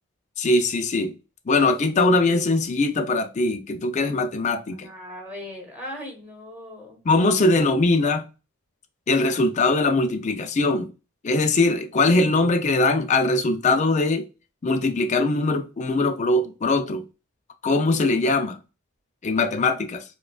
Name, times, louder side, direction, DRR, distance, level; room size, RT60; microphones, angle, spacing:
voice 1, 0.4-1.1 1.5-4.9 7.1-8.2 9.1-10.9 11.2-14.2 14.6-17.0 17.6-18.6 19.2-20.0, left 2 dB, 35° left, 0.4 m, -21 dB
voice 2, 4.7-7.0, left 1 dB, 10° right, 1.2 m, -38 dB
4.7 x 2.3 x 2.3 m
head